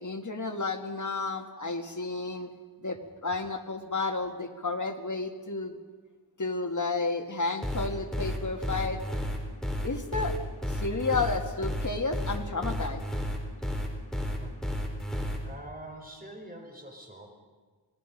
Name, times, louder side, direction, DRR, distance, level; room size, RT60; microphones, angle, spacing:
voice 1, 0.0-2.5 2.8-5.8 6.4-9.0 9.8-10.3 10.7-13.0, left 3 dB, 50° left, 4 dB, 1.9 m, -31 dB
sound 1, 7.6-15.4, equal, ahead, 3.9 m, -31 dB
voice 2, 15.3-17.4, right 1 dB, 20° right, 2 dB, 4.8 m, -45 dB
27.0 x 19.0 x 5.3 m, 1.4 s
wide cardioid pair, 75°, 39 cm